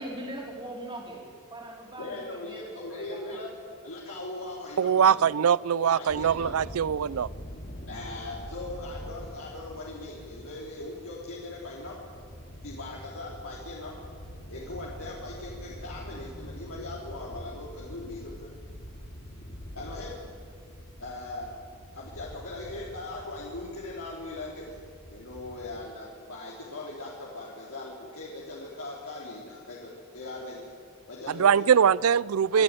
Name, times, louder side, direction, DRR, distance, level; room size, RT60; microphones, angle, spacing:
voice 1, 0.0-3.4, right 1 dB, 20° right, -1 dB, 4.2 m, -41 dB
voice 2, 2.0-3.5 3.8-6.5 7.9-11.9 12.6-13.9 14.5-18.5 19.7-20.2 21.0-21.5 21.9-24.8 25.1-30.7 31.1-31.8 32.5-32.6, left 2 dB, 70° left, -4 dB, 3.3 m, -40 dB
voice 3, 4.8-7.3 31.3-32.6, right 7 dB, 70° right, 23 dB, 0.4 m, -22 dB
sound 1, 6.1-25.9, equal, 45° left, 2.6 m, -45 dB
25.5 x 13.0 x 9.0 m, 2.4 s
head